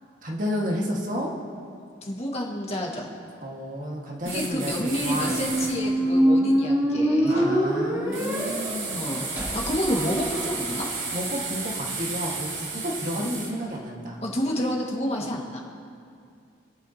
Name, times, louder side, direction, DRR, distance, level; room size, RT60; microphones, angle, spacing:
voice 1, 0.2-1.4 3.4-5.6 7.3-9.2 11.1-14.2, equal, 40° right, -2 dB, 1.6 m, -31 dB
voice 2, 2.0-3.1 4.3-7.6 8.9-10.9 13.0-13.2 14.2-15.6, equal, 35° left, -2 dB, 1.8 m, -29 dB
sound 1, 4.2-5.8 8.1-13.5, right 4 dB, 80° right, 3.0 m, -33 dB
Squeak, 5.1-11.0, equal, 10° right, 1.7 m, -25 dB
27.0 x 9.6 x 2.9 m, 2.3 s
head